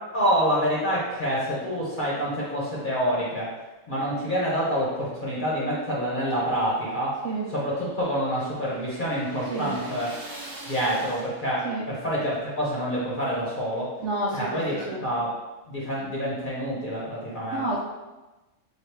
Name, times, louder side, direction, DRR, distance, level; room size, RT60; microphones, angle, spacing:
voice 1, 0.1-3.5 3.9-7.2 7.5-10.1 10.7-13.9 14.3-15.3 15.7-17.7, equal, 45° left, -6 dB, 0.9 m, -27 dB
sound 1, 6.2-11.7, right 1 dB, 35° right, 0.3 m, -44 dB
voice 2, 14.0-14.6 14.9-15.0 17.5-17.8, right 2 dB, 70° right, -3 dB, 0.9 m, -29 dB
3.4 x 2.4 x 4.5 m, 1.1 s
omnidirectional pair, 1.3 m